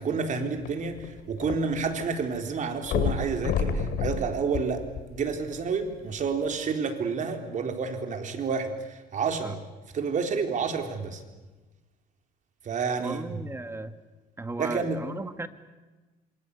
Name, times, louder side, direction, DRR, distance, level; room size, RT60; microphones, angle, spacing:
voice 1, 0.0-4.8 5.1-9.6 9.9-11.2 12.6-13.2 14.6-15.0, right 5 dB, 50° right, 5 dB, 4.0 m, -29 dB
sound 1, 0.6-2.1 2.3-2.4 2.8-5.4 6.1-6.2, left 6 dB, 75° left, 2.8 m, -30 dB
voice 2, 13.0-13.9 14.4-15.5, right 2 dB, 15° right, 10 dB, 1.9 m, -35 dB
27.0 x 25.0 x 8.5 m, 1.2 s
cardioid pair, 110°, 17 cm